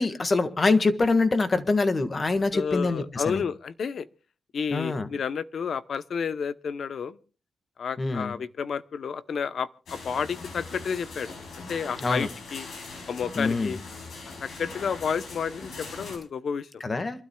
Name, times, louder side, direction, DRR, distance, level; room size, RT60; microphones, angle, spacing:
voice 1, 0.0-3.4 4.7-5.1 8.0-8.3 12.0-12.3 13.4-13.8 16.8-17.2, left 3 dB, 35° left, 1.5 m, -25 dB
voice 2, 2.5-4.1 4.5-7.2 7.8-11.3 11.7-12.7 13.1-13.8 14.4-16.8, left 6 dB, 65° left, 0.7 m, -31 dB
sound 1, 9.9-16.2, left 3 dB, 85° left, 6.0 m, -41 dB
27.5 x 12.5 x 2.3 m
cardioid pair, 105°, 0 cm